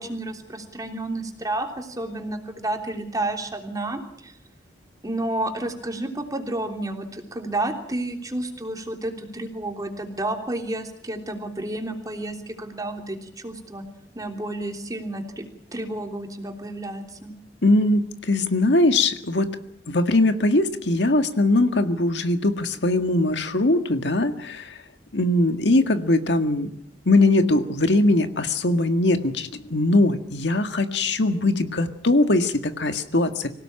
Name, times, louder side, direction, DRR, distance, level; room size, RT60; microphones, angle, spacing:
voice 1, 0.0-4.3 5.0-13.8 14.1-17.3, right 1 dB, 20° right, 4 dB, 3.3 m, -31 dB
voice 2, 17.6-19.5 19.9-24.8 25.1-26.7 27.1-33.5, left 2 dB, 75° left, 8 dB, 1.8 m, -21 dB
25.5 x 17.5 x 8.9 m, 0.70 s
head